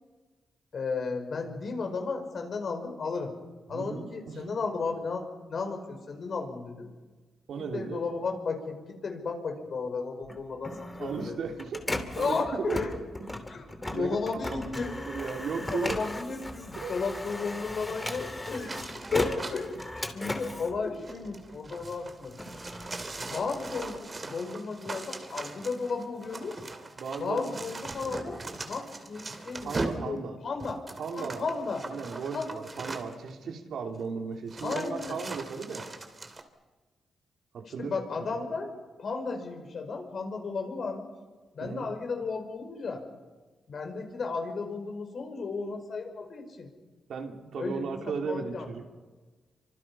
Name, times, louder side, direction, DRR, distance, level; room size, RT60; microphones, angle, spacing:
voice 1, 0.7-3.3 3.7-6.9 7.7-11.3 12.2-12.9 13.5-14.9 15.7-18.7 19.1-19.7 20.1-22.3 23.2-26.6 27.2-30.8 31.2-31.8 32.3-32.5 34.6-35.2 37.8-38.7 39.0-41.1 41.5-43.0 43.7-46.7 47.6-47.9 48.2-48.7, left 4 dB, 55° left, 4 dB, 5.2 m, -34 dB
voice 2, 3.7-4.6 7.5-8.0 11.0-11.8 12.2-13.3 13.9-16.0 16.7-17.0 27.0-27.7 29.6-30.4 31.0-31.5 31.8-35.9 37.5-38.4 41.6-41.9 47.1-48.8, right 5 dB, 75° right, 3 dB, 3.2 m, -36 dB
Printer, 10.2-21.7 22.1-24.0, left 1 dB, 15° left, 2.7 m, -37 dB
sound 1, 18.4-19.9 20.9-33.3 34.0-34.1 34.5-36.4, right 3 dB, 30° right, 2.7 m, -40 dB
29.0 x 25.5 x 5.7 m, 1.3 s
cardioid pair, 100°, 0 cm